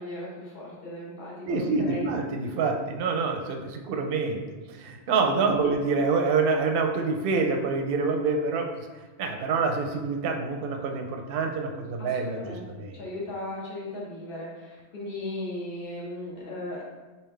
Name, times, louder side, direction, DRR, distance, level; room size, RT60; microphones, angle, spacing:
voice 1, 0.0-2.1 5.5-5.7 12.0-16.8, left 1 dB, 55° left, -4 dB, 1.1 m, -37 dB
voice 2, 1.5-8.9 9.2-12.4 12.8-13.0, right 4 dB, 65° right, 3 dB, 0.7 m, -26 dB
3.5 x 2.8 x 3.2 m, 1.3 s
omnidirectional pair, 1.1 m